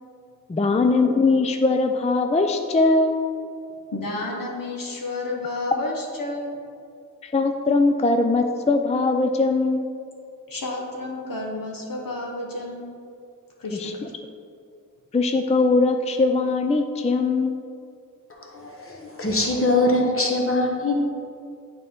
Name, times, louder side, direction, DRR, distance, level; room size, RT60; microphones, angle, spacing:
voice 1, 0.5-3.2 7.2-9.9 13.8-13.9 15.1-17.6, left 3 dB, 20° left, 5 dB, 0.4 m, -21 dB
voice 2, 3.9-6.5 10.5-12.9 13.6-14.1, left 2 dB, 80° left, -1 dB, 1.1 m, -31 dB
voice 3, 18.5-21.0, left 2 dB, 40° left, 0 dB, 1.1 m, -22 dB
8.9 x 4.3 x 3.6 m, 2.4 s
wide cardioid pair, 60°, 33 cm